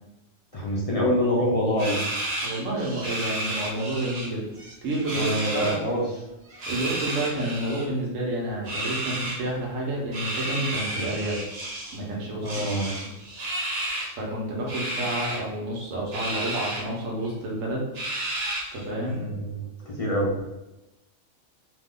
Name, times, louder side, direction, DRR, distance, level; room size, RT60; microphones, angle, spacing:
voice 1, 0.5-2.0 5.1-6.1 12.4-12.9 19.0-20.3, equal, 55° left, -3 dB, 0.4 m, -26 dB
sound 1, 1.8-4.3 4.6-5.8 6.5-7.9 8.6-9.4 10.1-12.0 12.4-14.1 14.7-15.4 16.1-16.8 17.2-17.3 18.0-18.8, right 1 dB, 60° right, 0.9 m, -32 dB
voice 2, 2.4-4.5 4.8-5.8 6.7-11.4 11.9-12.6 13.0-13.1 14.1-17.9 18.7-19.2, right 1 dB, 90° right, -2 dB, 1.2 m, -29 dB
2.9 x 2.1 x 3.6 m, 0.95 s
omnidirectional pair, 1.3 m